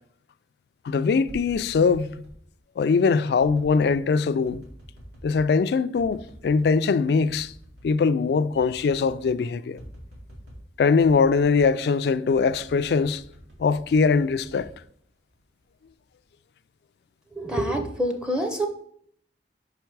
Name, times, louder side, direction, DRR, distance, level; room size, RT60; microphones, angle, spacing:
voice 1, 0.8-2.1 2.8-4.6 5.2-7.5 7.8-9.8 10.8-13.2 13.6-14.7, left 5 dB, 65° left, 0.3 m, -22 dB
sound 1, 1.3-2.4 3.4-4.0 4.5-5.5 6.0-6.7 7.2-7.9 8.2-8.3 8.5-9.3 9.8-10.7 11.0-11.7 12.3-15.4 15.8-16.2, equal, 80° right, 2.0 m, -46 dB
voice 2, 17.4-18.7, right 1 dB, 5° right, 0.5 m, -26 dB
5.3 x 4.5 x 4.6 m
head